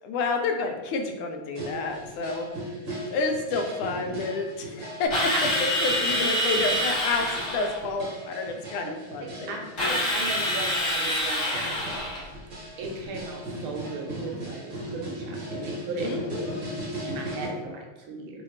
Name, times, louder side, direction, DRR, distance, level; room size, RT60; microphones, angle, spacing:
voice 1, 0.0-2.5 3.1-5.3 5.6-10.0 16.0-16.6, left 3 dB, 80° left, 4 dB, 1.4 m, -30 dB
sound 1, 1.5-17.5, equal, 50° right, 1.2 m, -38 dB
Drill, 5.1-7.8 9.8-12.3, equal, 50° left, 0.9 m, -26 dB
voice 2, 9.2-12.3 12.8-16.2 16.9-18.4, right 3 dB, 80° right, 1 dB, 1.5 m, -37 dB
3.1 x 3.1 x 3.1 m, 1.2 s
omnidirectional pair, 2.3 m